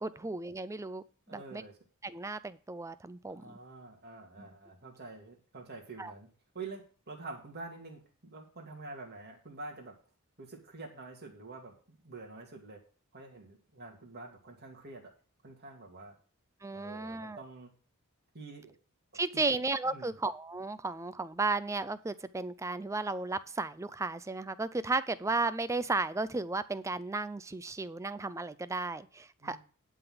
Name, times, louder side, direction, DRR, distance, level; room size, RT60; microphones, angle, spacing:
voice 1, 0.0-1.0 1.3-1.6 2.0-3.5 4.4-4.5 6.0-6.1 16.6-17.4 19.1-29.6, right 3 dB, 15° right, 15 dB, 0.4 m, -34 dB
voice 2, 1.3-1.8 3.3-6.3 6.5-8.0 8.3-10.0 10.4-12.8 13.1-15.1 15.4-16.2 16.7-17.7 18.3-18.8 19.1-19.6 19.8-20.2 29.4-29.6, right 3 dB, 45° right, 1 dB, 2.3 m, -47 dB
11.0 x 3.9 x 7.7 m, 0.39 s
head